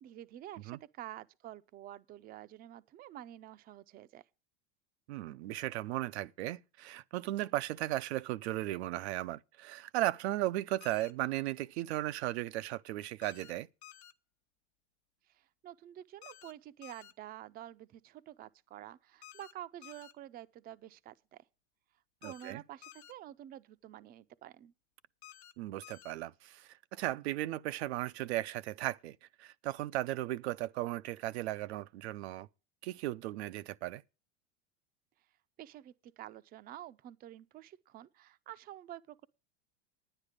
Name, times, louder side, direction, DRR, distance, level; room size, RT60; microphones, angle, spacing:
voice 1, 0.0-4.2 15.3-21.4 22.2-24.7 35.6-39.3, right 12 dB, 30° right, 0.5 m, -49 dB
voice 2, 5.1-13.7 22.2-22.6 25.6-32.5 32.8-34.0, right 15 dB, 75° right, 0.6 m, -36 dB
sound 1, 10.8-11.1 13.2-13.5 13.8-14.1 16.2-16.5 16.8-17.1 19.2-19.5 19.8-20.1 22.2-22.5 22.8-23.1 25.2-25.5 25.8-26.1, left 13 dB, 75° left, 1.1 m, -53 dB
10.0 x 9.8 x 5.1 m
supercardioid pair, 125°, 33 cm